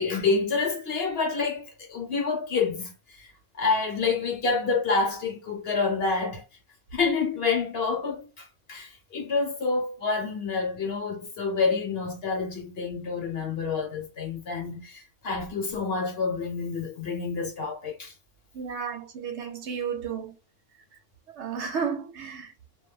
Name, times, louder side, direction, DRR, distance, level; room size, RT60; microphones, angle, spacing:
voice 1, 0.0-3.3 3.5-6.4 6.9-18.1, left 4 dB, 55° left, 1.0 m, -28 dB
voice 2, 18.5-20.3 21.4-22.5, right 6 dB, 65° right, 0.8 m, -32 dB
2.4 x 2.1 x 3.1 m
omnidirectional pair, 1.3 m